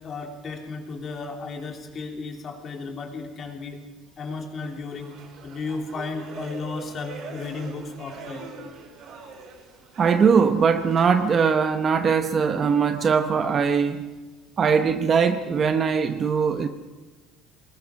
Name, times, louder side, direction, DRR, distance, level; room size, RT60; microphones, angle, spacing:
voice 1, 0.0-3.8 4.2-5.2 5.4-8.5, left 4 dB, 30° left, 3.2 m, -34 dB
sound 1, 4.6-11.5, right 4 dB, 45° right, 5.3 m, -42 dB
voice 2, 10.0-14.1 14.6-16.7, right 6 dB, 25° right, 0.9 m, -21 dB
24.5 x 21.0 x 6.0 m
cardioid pair, 175°, 0 cm